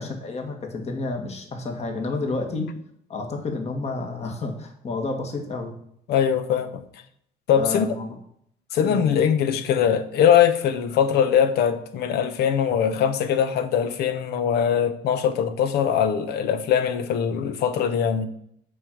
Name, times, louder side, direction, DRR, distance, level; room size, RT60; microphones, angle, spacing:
voice 1, 0.0-2.7 3.1-5.8 7.5-8.1 8.8-9.0, left 3 dB, 40° left, 1.9 m, -30 dB
voice 2, 6.1-6.8 7.5-7.9 8.7-18.3, left 8 dB, 75° left, 1.0 m, -21 dB
6.7 x 5.3 x 7.1 m
cardioid pair, 110°, 17 cm